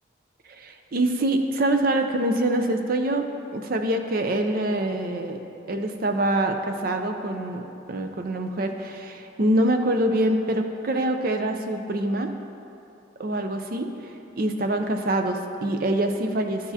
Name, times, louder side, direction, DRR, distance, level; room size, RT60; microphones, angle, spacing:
voice 1, 0.5-5.4 5.7-12.3 13.2-13.9 14.4-16.7, right 1 dB, 45° right, 6 dB, 0.5 m, -25 dB
11.5 x 7.1 x 2.8 m, 2.7 s
head